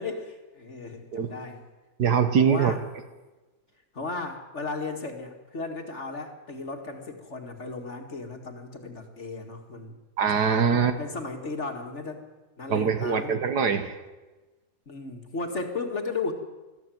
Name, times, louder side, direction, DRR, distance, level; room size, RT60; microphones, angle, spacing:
voice 1, 0.0-1.6 2.5-2.8 3.9-9.9 10.9-12.2 12.6-13.4 14.9-16.3, left 3 dB, 35° left, 4 dB, 2.3 m, -35 dB
voice 2, 2.0-2.7 10.2-11.0 12.7-14.0, right 6 dB, 60° right, 9 dB, 1.7 m, -23 dB
20.5 x 14.0 x 9.2 m, 1.2 s
omnidirectional pair, 2.1 m